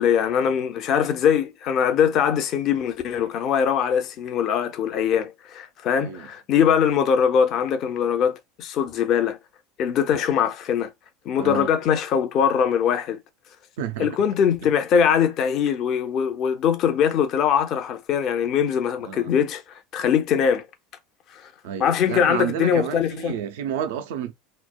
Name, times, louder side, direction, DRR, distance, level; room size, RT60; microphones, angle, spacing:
voice 1, 0.0-9.4 9.8-10.9 11.3-13.2 14.0-19.6 19.9-20.6 21.8-23.4, left 8 dB, 50° left, 0.5 m, -22 dB
voice 2, 6.0-6.3 11.4-11.7 13.8-14.1 19.0-19.3 21.6-24.3, right 9 dB, 70° right, 0.4 m, -30 dB
3.1 x 2.0 x 2.3 m
hypercardioid pair, 80°, 0 cm